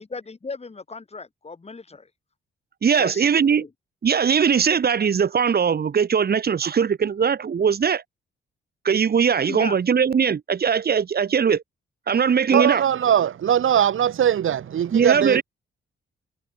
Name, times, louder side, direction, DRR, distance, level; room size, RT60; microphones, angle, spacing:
voice 1, 0.0-2.1 3.0-3.7 9.5-9.8 12.5-12.7, left 4 dB, 30° left, 3.4 m, -35 dB
voice 2, 2.8-3.6 4.0-8.0 8.8-11.6 12.1-12.8 14.9-15.4, right 7 dB, 50° right, 1.7 m, -20 dB
voice 3, 12.5-15.4, right 9 dB, 75° right, 4.0 m, -20 dB
cardioid pair, 85°, 21 cm